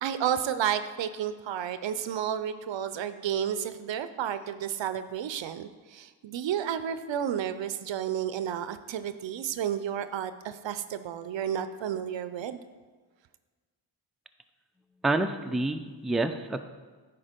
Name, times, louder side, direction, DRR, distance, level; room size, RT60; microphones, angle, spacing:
voice 1, 0.0-12.6, right 9 dB, 65° right, 12 dB, 0.6 m, -31 dB
voice 2, 15.0-16.6, right 2 dB, ahead, 6 dB, 0.5 m, -28 dB
9.8 x 4.0 x 5.1 m, 1.4 s
supercardioid pair, 40°, 49 cm